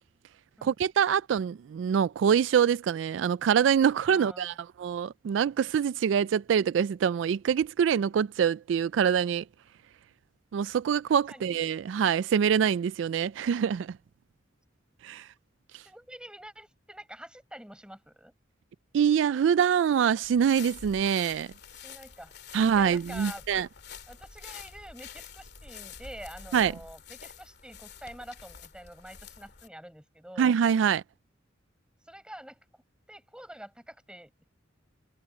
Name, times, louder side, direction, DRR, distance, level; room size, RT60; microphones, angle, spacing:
voice 1, 0.6-9.4 10.5-14.0 15.0-15.3 15.7-15.8 18.9-21.5 22.5-23.7 26.5-26.7 30.4-31.0, right 8 dB, 75° right, 0.3 m, -25 dB
voice 2, 4.1-4.6 11.3-11.5 15.8-18.3 21.7-22.3 22.7-23.6 24.1-30.5 32.1-32.6 33.1-34.5, right 1 dB, 5° right, 6.6 m, -46 dB
sound 1, 20.2-29.7, left 6 dB, 60° left, 2.3 m, -47 dB
head